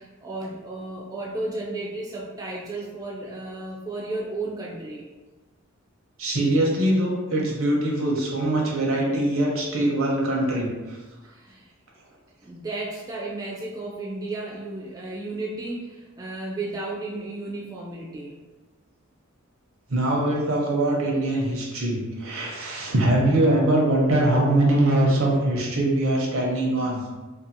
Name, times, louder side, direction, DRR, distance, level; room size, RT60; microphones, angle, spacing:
voice 1, 0.0-5.1 11.2-11.7 12.4-18.4, right 2 dB, 20° right, -4 dB, 0.3 m, -33 dB
voice 2, 6.2-11.0 19.9-27.0, right 1 dB, 75° right, -2 dB, 0.7 m, -22 dB
2.6 x 2.3 x 2.7 m, 1.2 s
head